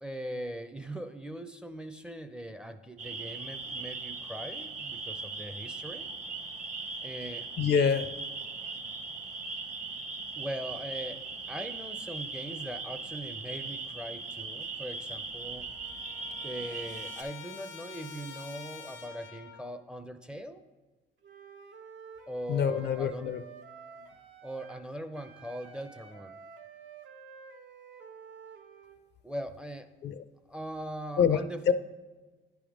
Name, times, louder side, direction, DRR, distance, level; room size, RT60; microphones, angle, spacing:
voice 1, 0.0-6.1 7.0-7.5 10.3-15.7 16.4-20.6 22.3-23.3 24.4-26.4 29.2-29.9 30.5-31.7, right 1 dB, 5° right, 9 dB, 0.4 m, -40 dB
sound 1, 3.0-17.2, right 3 dB, 40° right, 0.8 m, -39 dB
voice 2, 7.6-8.1 22.5-23.4 30.0-30.2 31.2-31.7, left 7 dB, 60° left, 12 dB, 0.4 m, -26 dB
Trumpet, 15.0-15.1 15.3-19.7, left 6 dB, 80° left, 0.8 m, -47 dB
Wind instrument woodwind instrument, 21.2-24.9 25.1-29.0, right 6 dB, 70° right, 0.7 m, -50 dB
10.0 x 3.5 x 5.0 m, 1.3 s
cardioid pair, 90°, 20 cm